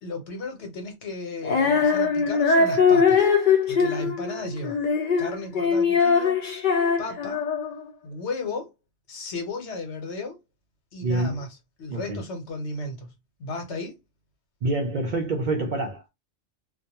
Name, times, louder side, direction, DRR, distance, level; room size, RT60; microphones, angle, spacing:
voice 1, 0.0-3.3 3.7-4.8 5.2-6.4 7.0-7.4 8.0-8.7 9.1-10.4 10.9-13.1 13.4-14.0, left 2 dB, 65° left, 1.0 m, -34 dB
Female singing, 1.4-7.9, left 5 dB, 50° left, 0.6 m, -21 dB
voice 2, 11.0-11.4 11.9-12.2 14.6-16.1, right 2 dB, 55° right, 0.5 m, -26 dB
2.3 x 2.2 x 2.7 m
omnidirectional pair, 1.3 m